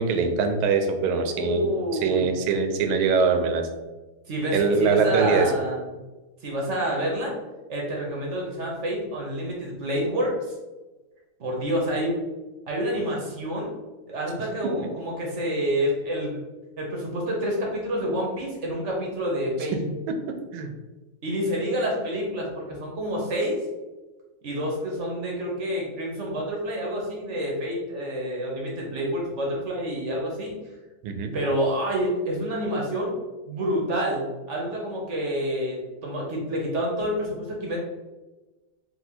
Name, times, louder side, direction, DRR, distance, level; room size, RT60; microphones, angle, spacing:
voice 1, 0.0-1.7 2.0-3.7 4.5-5.5 20.1-20.7 31.0-31.3, right 5 dB, 80° right, 6 dB, 1.4 m, -23 dB
voice 2, 1.3-2.3 4.3-5.8 6.4-7.3 7.7-10.5 11.4-12.1 12.7-13.7 14.1-16.4 16.8-19.7 21.2-23.6 24.4-30.5 31.3-33.1 33.5-37.8, equal, 60° right, -2 dB, 0.7 m, -28 dB
4.3 x 2.3 x 4.2 m, 1.2 s
omnidirectional pair, 2.3 m